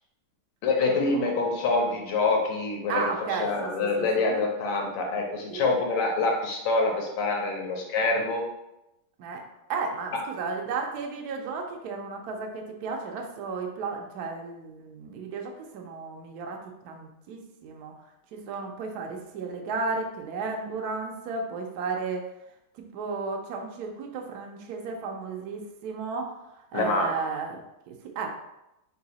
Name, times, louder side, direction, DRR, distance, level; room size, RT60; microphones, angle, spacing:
voice 1, 0.6-3.0 3.4-8.4 26.7-27.2, left 3 dB, 80° left, 1 dB, 1.6 m, -26 dB
voice 2, 2.9-4.4 5.5-5.7 9.2-9.4 9.7-16.6 16.8-17.9 18.3-22.3 22.7-27.6 27.9-28.3, right 4 dB, 75° right, 2 dB, 0.9 m, -34 dB
3.8 x 2.8 x 4.0 m, 0.89 s
omnidirectional pair, 2.4 m